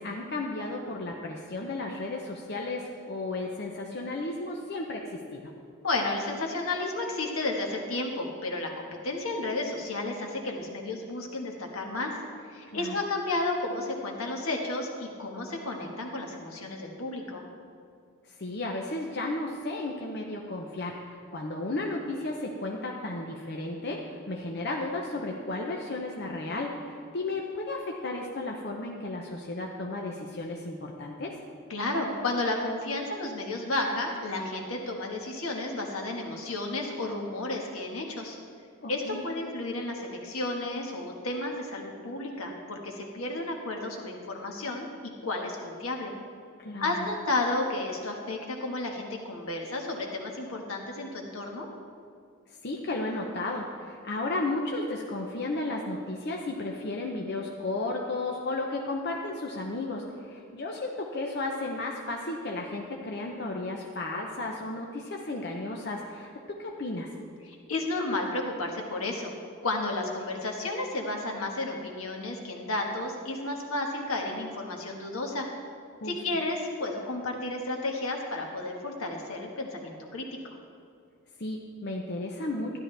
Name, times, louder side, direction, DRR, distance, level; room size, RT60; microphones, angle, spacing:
voice 1, 0.0-5.5 12.7-12.9 18.3-31.3 38.8-39.2 46.6-47.1 52.6-67.1 75.9-76.2 81.4-82.8, left 2 dB, 50° left, 0 dB, 0.7 m, -34 dB
voice 2, 5.8-12.1 12.5-17.4 31.7-38.4 38.9-46.1 46.8-51.7 67.4-69.3 69.6-75.5 76.0-80.3, left 2 dB, 75° left, 1 dB, 1.4 m, -32 dB
12.5 x 10.5 x 3.3 m, 2.4 s
head